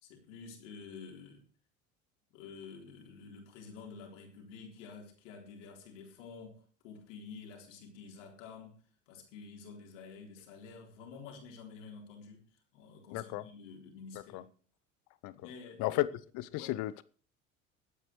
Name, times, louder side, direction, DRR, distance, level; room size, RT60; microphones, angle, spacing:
voice 1, 0.0-1.5 2.3-12.5 12.7-14.5 15.3-16.0 16.6-16.8, left 5 dB, 70° left, 3.9 m, -50 dB
voice 2, 13.1-13.4 14.3-14.4 15.2-15.3 15.8-16.1 16.3-17.0, left 18 dB, 55° left, 0.9 m, -33 dB
22.5 x 9.2 x 3.2 m
figure-of-eight pair, 65°, 38 cm